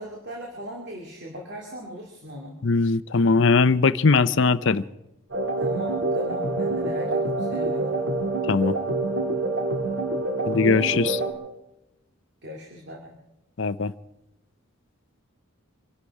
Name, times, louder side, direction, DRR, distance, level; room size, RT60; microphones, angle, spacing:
voice 1, 0.0-2.6 5.6-8.1 12.4-13.2, equal, 50° right, 0 dB, 2.4 m, -39 dB
voice 2, 2.6-4.8 8.5-8.7 10.5-11.2 13.6-13.9, left 4 dB, 55° left, 15 dB, 0.6 m, -20 dB
sound 1, 5.3-11.3, right 2 dB, 65° right, 2.4 m, -26 dB
25.5 x 11.5 x 4.8 m, 0.93 s
head